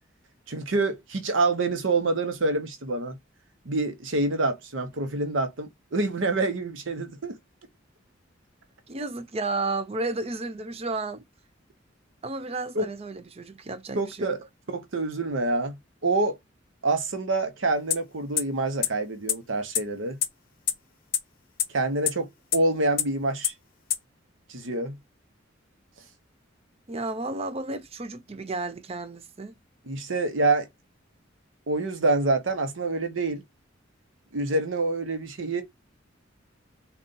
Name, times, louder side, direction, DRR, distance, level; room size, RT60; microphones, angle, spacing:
voice 1, 0.5-3.2 3.6-7.4 12.7-12.9 14.0-15.8 16.0-16.4 16.8-20.2 21.7-23.5 24.5-24.9 29.9-30.7 31.7-33.4 34.3-35.6, right 2 dB, 75° right, 0.8 m, -26 dB
voice 2, 8.9-11.2 12.2-14.3 26.9-29.5, right 2 dB, 30° right, 0.5 m, -32 dB
sound 1, 17.9-18.0 18.4-18.5 18.8-18.9 19.3-19.4 19.7-19.8 20.2-20.3 20.7-20.8 21.1-21.2 21.6-21.7 22.1-22.2 22.5-22.6 23.0-23.1 23.4-23.5 23.9-24.0, left 11 dB, 45° left, 0.7 m, -22 dB
3.8 x 2.4 x 3.8 m
head